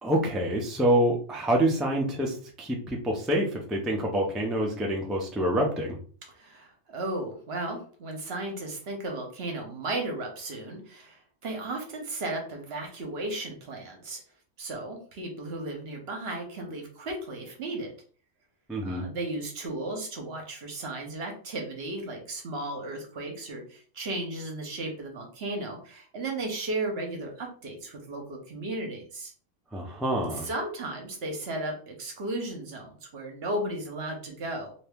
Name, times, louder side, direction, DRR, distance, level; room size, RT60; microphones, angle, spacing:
voice 1, 0.0-6.0 18.7-19.1 29.7-30.5, right 1 dB, ahead, -1 dB, 0.4 m, -26 dB
voice 2, 6.3-14.2 14.6-17.9 18.8-29.3 30.3-34.7, right 2 dB, 60° right, 2 dB, 1.0 m, -35 dB
2.8 x 2.7 x 3.4 m, 0.43 s
omnidirectional pair, 1.2 m